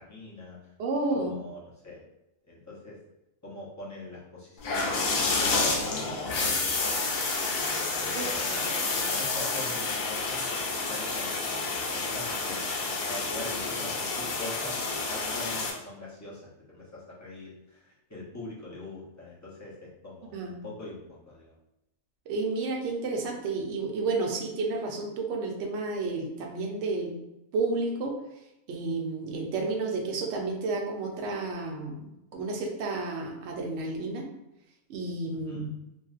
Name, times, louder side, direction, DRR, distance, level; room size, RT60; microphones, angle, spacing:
voice 1, 0.0-0.7 1.1-2.0 2.5-3.0 3.4-7.0 7.7-12.6 12.9-21.6 35.3-35.7, left 2 dB, 25° left, -6 dB, 0.3 m, -43 dB
voice 2, 0.8-1.3 8.2-8.6 20.3-20.6 22.3-27.1 27.5-28.2 28.7-34.3 34.9-35.7, right 3 dB, 65° right, 1 dB, 0.8 m, -31 dB
sound 1, 4.6-15.7, left 3 dB, 90° left, 1.0 m, -29 dB
2.9 x 2.5 x 2.4 m, 0.90 s
omnidirectional pair, 1.4 m